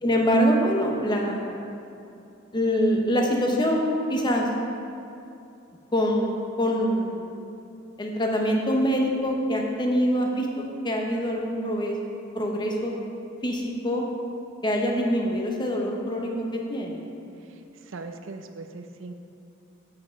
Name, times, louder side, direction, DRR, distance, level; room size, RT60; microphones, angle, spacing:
voice 1, 0.0-1.6 2.5-4.5 5.9-7.3 8.0-12.0 12.3-12.9 13.4-14.1 14.6-17.0, equal, 20° left, 0 dB, 0.8 m, -24 dB
voice 2, 17.4-19.1, right 3 dB, 65° right, 7 dB, 0.5 m, -40 dB
7.7 x 4.8 x 5.2 m, 2.7 s
head